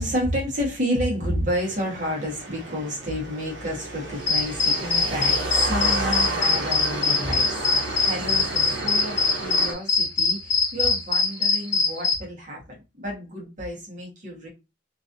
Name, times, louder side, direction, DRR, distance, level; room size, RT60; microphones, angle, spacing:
voice 1, 0.0-14.5, equal, 45° right, 1.3 m, -30 dB
sound 1, 1.6-9.7, right 2 dB, 90° right, 0.9 m, -31 dB
sound 2, 4.3-12.1, left 4 dB, 75° left, 1.3 m, -22 dB
3.1 x 2.6 x 2.6 m
head